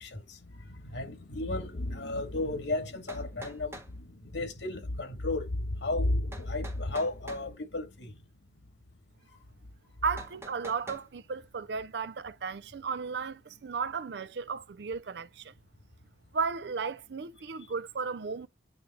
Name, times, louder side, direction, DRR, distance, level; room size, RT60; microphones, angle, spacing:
voice 1, 0.0-8.1, left 2 dB, 85° left, 2.3 m, -33 dB
sound 1, 2.6-2.7 3.1-3.9 6.3-7.5 10.2-11.1, right 1 dB, 15° right, 1.4 m, -46 dB
voice 2, 10.0-15.5 16.3-18.5, right 5 dB, 70° right, 0.5 m, -34 dB
9.1 x 3.5 x 3.2 m
head